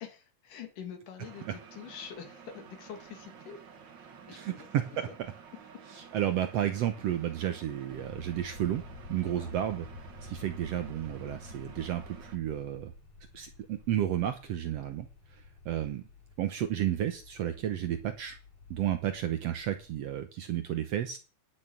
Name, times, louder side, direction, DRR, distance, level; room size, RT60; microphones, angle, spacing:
voice 1, 0.0-3.6 4.3-4.7 9.4-9.5, left 7 dB, 75° left, 5 dB, 3.6 m, -45 dB
sound 1, 1.2-12.4, right 6 dB, 50° right, 1.5 m, -52 dB
voice 2, 4.3-5.3 5.9-8.8 9.1-9.9 10.2-12.9 13.3-15.1 15.6-16.0 16.4-18.4 18.7-21.2, right 11 dB, 70° right, 8 dB, 1.7 m, -32 dB
sound 2, 7.9-19.9, left 2 dB, 50° left, 4.3 m, -50 dB
11.0 x 6.5 x 7.7 m, 0.34 s
omnidirectional pair, 3.7 m